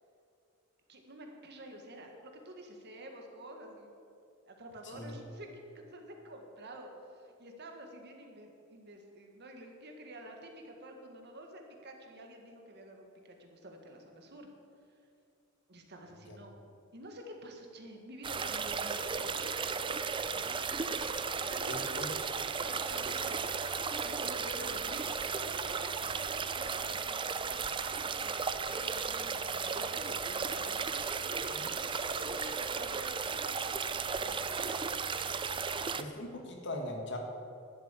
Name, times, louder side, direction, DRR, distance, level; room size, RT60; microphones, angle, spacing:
voice 1, 0.9-4.0 4.5-5.5 5.9-14.5 15.7-19.6 19.9-20.6 20.9-22.2 22.4-30.8 31.2-34.5, right 1 dB, 55° right, 3 dB, 1.7 m, -49 dB
voice 2, 4.8-5.1 16.3-16.4 21.7-22.1 31.5-31.7 36.0-37.2, left 1 dB, 60° left, 2 dB, 1.8 m, -40 dB
sound 1, 18.2-36.0, right 5 dB, 25° right, 0.5 m, -35 dB
11.5 x 8.3 x 8.4 m, 2.6 s
head